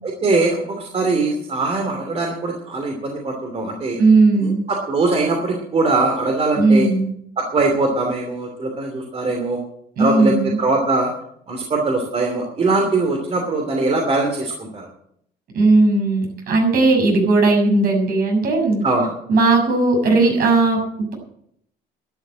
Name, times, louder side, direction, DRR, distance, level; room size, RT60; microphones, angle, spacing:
voice 1, 0.0-4.0 4.4-6.9 7.4-9.6 10.0-11.1 11.5-14.9 18.8-19.1, right 3 dB, 35° right, 2 dB, 2.7 m, -21 dB
voice 2, 4.0-4.6 6.6-7.1 10.0-10.6 15.5-18.8 19.3-20.8, right 3 dB, 60° right, 2 dB, 6.7 m, -16 dB
12.0 x 9.9 x 7.5 m, 0.71 s
cardioid pair, 110°, 17 cm